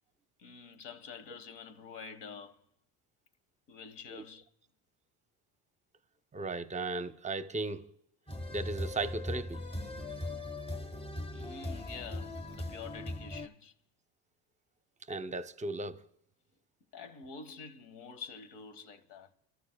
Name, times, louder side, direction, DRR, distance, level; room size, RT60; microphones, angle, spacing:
voice 1, 0.4-2.6 3.7-4.5 11.3-13.7 16.9-19.3, left 5 dB, 70° left, 1.6 m, -47 dB
voice 2, 6.3-7.9 8.5-9.6 15.1-16.0, right 3 dB, 15° right, 0.6 m, -36 dB
sound 1, 8.3-13.5, left 1 dB, 15° left, 1.0 m, -39 dB
26.5 x 13.5 x 2.3 m
supercardioid pair, 100°, 43 cm